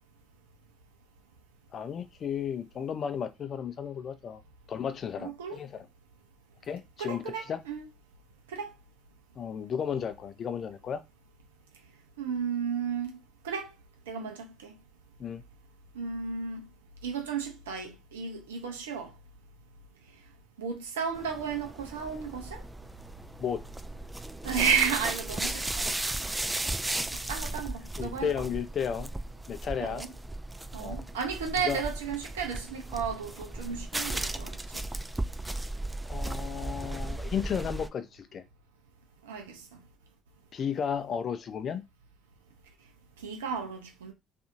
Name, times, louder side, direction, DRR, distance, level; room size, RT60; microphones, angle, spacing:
voice 1, 1.7-4.4 4.7-5.9 6.7-7.6 9.4-11.0 15.2-15.4 23.4-23.6 28.0-29.1 29.5-30.1 30.8-31.0 31.6-31.8 36.0-38.4 40.5-41.8, left 7 dB, 50° left, 0.5 m, -33 dB
voice 2, 5.2-5.6 7.0-7.9 8.5-8.7 12.2-13.2 13.4-13.7 14.1-14.8 15.9-16.7 17.0-19.1 20.6-22.6 24.4-25.9 27.3-28.3 29.8-30.1 30.7-34.9 39.2-39.8 43.2-44.1, right 6 dB, 80° right, 0.6 m, -33 dB
sound 1, 21.1-37.9, right 2 dB, 15° right, 0.4 m, -36 dB
2.6 x 2.5 x 2.5 m
figure-of-eight pair, 50°, 0 cm